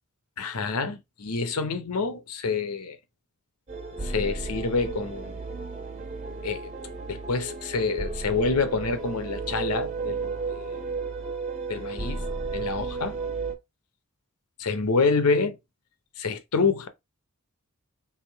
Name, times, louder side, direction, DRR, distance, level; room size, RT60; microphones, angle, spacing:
voice 1, 0.4-3.0 4.0-5.4 6.4-6.7 7.1-10.9 11.7-12.2 12.5-13.2 14.6-15.6 16.2-16.9, left 4 dB, 90° left, 0.8 m, -27 dB
sound 1, 3.7-13.5, right 4 dB, 35° right, 1.0 m, -33 dB
3.5 x 2.7 x 4.5 m
head